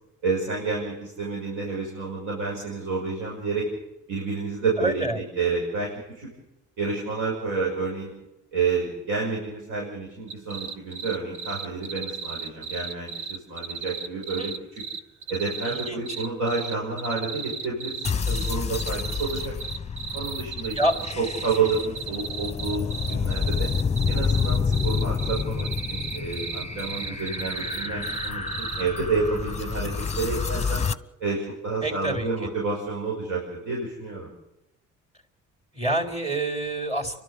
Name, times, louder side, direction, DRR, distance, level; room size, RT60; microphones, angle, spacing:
voice 1, 0.2-3.7 4.1-5.1 5.4-6.3 6.8-8.1 8.5-14.8 15.3-19.5 20.1-20.8 21.2-23.7 24.1-30.8 31.2-34.3, right 4 dB, 90° right, -4 dB, 6.4 m, -29 dB
voice 2, 4.8-5.2 14.4-14.5 15.7-16.0 20.7-20.9 31.8-32.5 35.7-37.2, right 1 dB, 20° right, 3 dB, 3.8 m, -27 dB
sound 1, 10.3-28.8, right 6 dB, 70° right, 1.3 m, -34 dB
sound 2, 18.0-30.9, left 5 dB, 20° left, 0.8 m, -29 dB
29.0 x 12.5 x 8.2 m, 0.93 s
cardioid pair, 90°, 30 cm